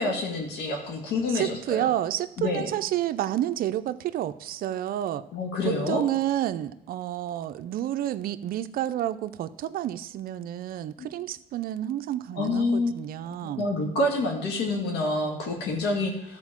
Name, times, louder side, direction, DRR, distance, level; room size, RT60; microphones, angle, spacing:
voice 1, 0.0-1.9 2.4-2.7 5.3-6.0 11.0-11.1 12.4-12.9 13.3-16.4, left 2 dB, 80° left, 1 dB, 2.1 m, -27 dB
voice 2, 1.3-5.2 5.6-13.7, right 12 dB, 60° right, 10 dB, 0.5 m, -30 dB
12.5 x 4.4 x 7.3 m, 0.80 s
cardioid pair, 110°, 17 cm